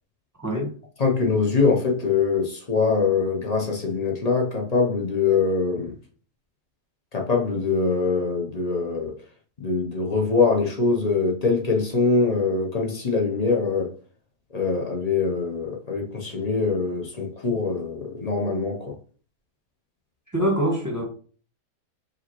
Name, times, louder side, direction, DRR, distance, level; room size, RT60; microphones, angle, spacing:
voice 1, 0.4-0.7 20.3-21.0, right 1 dB, 10° right, 1.1 m, -24 dB
voice 2, 1.0-6.0 7.1-9.2 9.6-13.9 14.5-18.9, left 4 dB, 40° left, 0.5 m, -23 dB
5.1 x 2.8 x 2.9 m
omnidirectional pair, 1.7 m